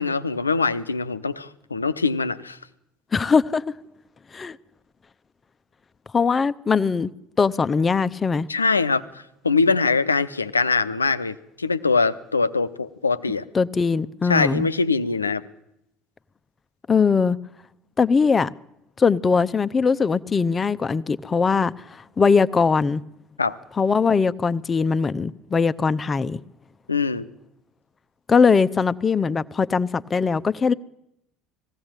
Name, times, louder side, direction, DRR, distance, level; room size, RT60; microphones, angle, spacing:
voice 1, 0.0-2.6 8.5-9.0 9.4-13.4 14.2-15.4 23.4-23.6 26.9-27.3, left 4 dB, 90° left, 0.7 m, -22 dB
voice 2, 3.1-3.6 4.3-4.6 6.1-7.1 7.4-8.5 13.5-14.7 16.9-17.4 18.0-18.5 19.0-23.0 23.8-26.4 28.3-30.7, left 5 dB, 25° left, 0.7 m, -21 dB
20.0 x 16.0 x 9.0 m
figure-of-eight pair, 65°, 0 cm